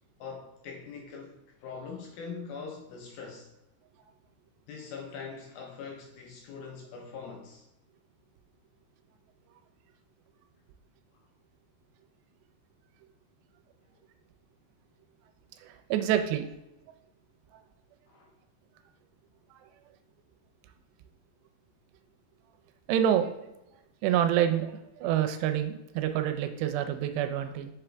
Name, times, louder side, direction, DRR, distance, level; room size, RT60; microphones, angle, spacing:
voice 1, 0.2-3.5 4.7-7.7 18.1-18.3, left 5 dB, 75° left, 1 dB, 2.3 m, -42 dB
voice 2, 15.6-16.5 22.9-23.3 24.0-27.7, right 10 dB, 85° right, 8 dB, 2.7 m, -27 dB
6.0 x 5.5 x 3.3 m, 0.94 s
omnidirectional pair, 5.0 m